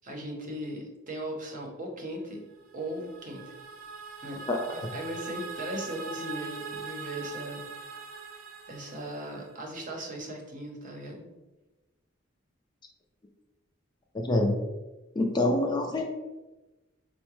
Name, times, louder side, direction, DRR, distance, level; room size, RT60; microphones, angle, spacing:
voice 1, 0.0-2.4 2.7-3.4 4.2-4.4 4.7-7.7 8.7-11.2, right 1 dB, 40° right, 0 dB, 0.7 m, -38 dB
sound 1, 2.6-9.7, right 5 dB, 85° right, 0.5 m, -42 dB
voice 2, 14.1-14.6 15.2-16.0, left 1 dB, 20° left, 2 dB, 0.4 m, -25 dB
4.5 x 2.1 x 3.0 m, 1.1 s
head